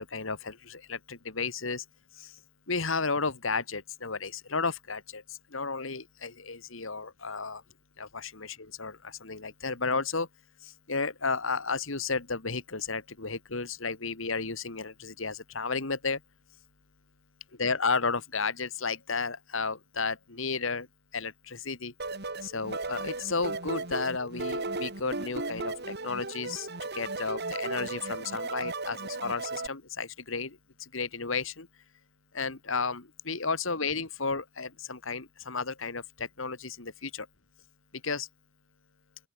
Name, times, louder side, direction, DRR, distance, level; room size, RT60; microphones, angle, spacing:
voice 1, 0.0-1.8 2.2-2.3 2.7-5.2 5.5-7.6 8.0-10.3 10.9-16.2 17.6-20.9 21.1-21.9 22.4-26.7 26.9-30.6 30.9-31.7 32.3-37.3 38.0-38.3, left 4 dB, 70° left, 2.1 m, -33 dB
sound 1, 22.0-29.7, right 3 dB, 50° right, 3.1 m, -36 dB
open air
head